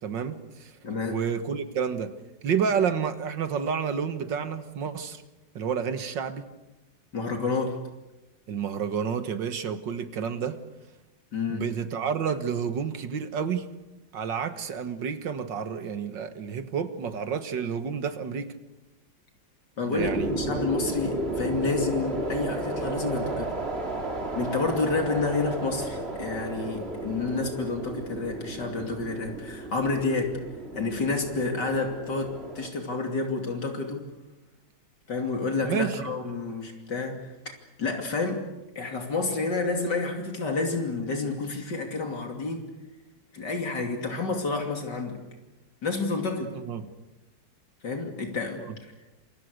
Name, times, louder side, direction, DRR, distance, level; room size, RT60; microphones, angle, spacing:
voice 1, 0.0-0.8 1.1-2.1 2.4-5.2 5.6-6.5 8.5-10.6 11.5-13.7 14.1-18.5 19.9-20.3 35.6-36.1 46.5-46.9 48.6-48.7, right 7 dB, 75° right, 10 dB, 2.2 m, -30 dB
voice 2, 0.8-1.2 7.1-7.8 11.3-11.7 19.8-23.5 24.4-30.3 30.8-34.1 35.1-37.3 37.8-38.5 38.8-42.7 43.3-45.2 45.8-46.5 47.8-48.6, left 3 dB, 65° left, 3 dB, 3.4 m, -29 dB
sound 1, 20.0-32.7, right 2 dB, 35° right, 2.7 m, -33 dB
27.5 x 24.0 x 6.6 m, 1.0 s
omnidirectional pair, 2.0 m